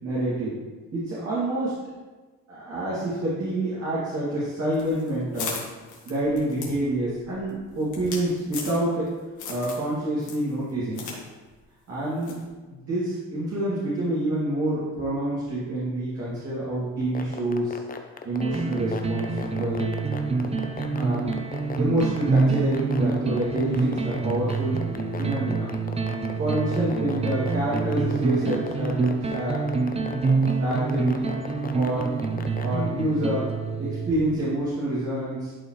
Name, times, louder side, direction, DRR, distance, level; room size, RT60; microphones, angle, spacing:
voice 1, 0.0-0.6 0.9-1.8 2.5-5.5 6.0-9.1 9.5-11.1 11.9-12.3 12.7-17.8 18.2-19.9 20.9-21.3 21.8-24.8 25.2-25.8 26.4-29.7 30.6-32.1 32.6-33.5 33.8-35.5, right 1 dB, 55° right, -9 dB, 2.4 m, -27 dB
sound 1, 4.7-9.1 9.4-9.9 10.2-11.2 11.4-11.5 12.2-12.5, left 5 dB, 75° left, 1.8 m, -37 dB
sound 2, 17.0-32.7, left 5 dB, 30° left, 0.7 m, -36 dB
sound 3, 18.4-34.3, right 4 dB, 20° right, 0.6 m, -27 dB
11.5 x 4.3 x 3.2 m, 1.3 s
cardioid pair, 90°, 30 cm